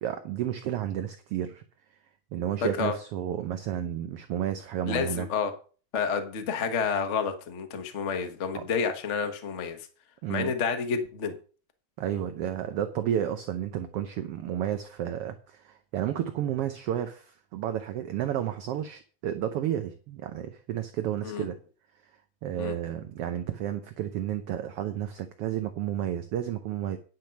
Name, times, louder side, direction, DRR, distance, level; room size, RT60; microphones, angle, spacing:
voice 1, 0.0-1.6 2.3-5.3 8.5-8.7 10.2-10.5 12.0-21.6 22.4-27.0, right 10 dB, 70° right, 8 dB, 1.4 m, -31 dB
voice 2, 2.6-2.9 4.8-5.5 5.9-9.8 10.3-11.4 21.2-21.5 22.6-22.7, left 6 dB, 55° left, 7 dB, 0.8 m, -29 dB
10.5 x 6.3 x 5.8 m, 0.39 s
omnidirectional pair, 3.4 m